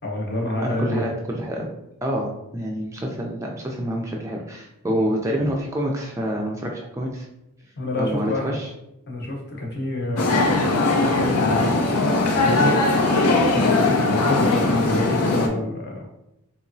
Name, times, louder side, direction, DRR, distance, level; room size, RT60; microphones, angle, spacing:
voice 1, 0.0-1.1 4.9-5.1 7.8-8.5 9.1-12.0 12.4-12.8 13.4-16.1, left 1 dB, 45° left, 0 dB, 0.8 m, -28 dB
voice 2, 0.6-1.7 2.0-7.3 8.0-8.7, equal, 15° right, -1 dB, 0.3 m, -27 dB
sound 1, 10.2-15.5, left 2 dB, 80° left, 0.5 m, -20 dB
3.6 x 2.9 x 2.6 m, 0.86 s
head